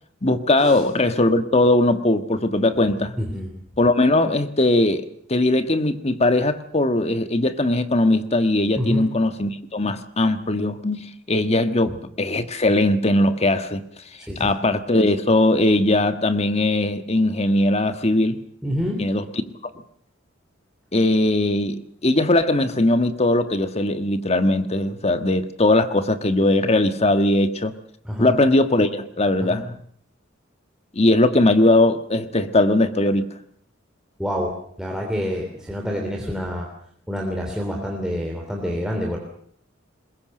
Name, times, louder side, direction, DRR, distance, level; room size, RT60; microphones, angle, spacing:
voice 1, 0.2-3.1 3.8-13.8 14.4-18.4 19.0-19.2 20.9-27.7 28.2-29.7 30.9-33.3, left 2 dB, 35° left, 10 dB, 1.5 m, -20 dB
voice 2, 3.2-3.5 8.8-9.1 14.3-14.5 18.6-19.0 28.0-28.4 29.4-29.6 34.2-36.7 37.1-39.2, equal, 5° right, 0 dB, 3.3 m, -27 dB
21.5 x 21.5 x 7.7 m, 0.64 s
head